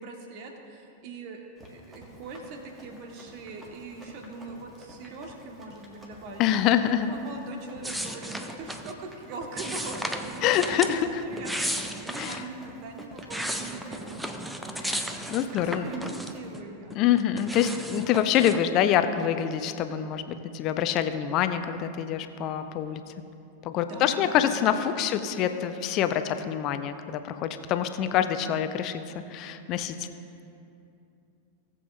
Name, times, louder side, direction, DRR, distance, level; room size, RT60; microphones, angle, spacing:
voice 1, 0.0-6.4 6.8-14.3 14.8-15.3 15.6-17.0 23.8-25.6, right 3 dB, 45° right, 3 dB, 1.4 m, -42 dB
Run, 1.6-16.5, equal, 20° right, 1.8 m, -49 dB
voice 2, 6.4-7.1 10.4-11.2 12.2-12.4 14.8-15.9 16.9-23.0 23.6-29.0 29.3-30.1, left 10 dB, 40° left, 10 dB, 0.6 m, -26 dB
sound 1, 7.8-8.9 9.6-11.0 11.3-12.5 13.0-16.6 16.9-18.6, equal, 5° right, 0.6 m, -34 dB
18.5 x 7.7 x 2.6 m, 2.6 s
figure-of-eight pair, 90°, 0 cm